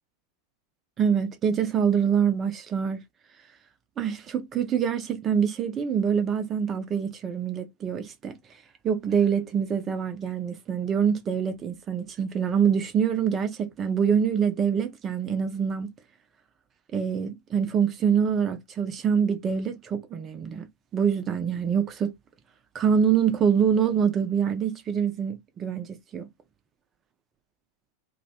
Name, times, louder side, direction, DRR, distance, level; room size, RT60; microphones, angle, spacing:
voice 1, 1.0-3.0 4.0-8.4 8.8-15.9 16.9-20.7 20.9-22.1 22.7-26.3, right 7 dB, 25° right, 0.4 m, -25 dB
2.5 x 2.1 x 2.7 m
figure-of-eight pair, 90°, 0 cm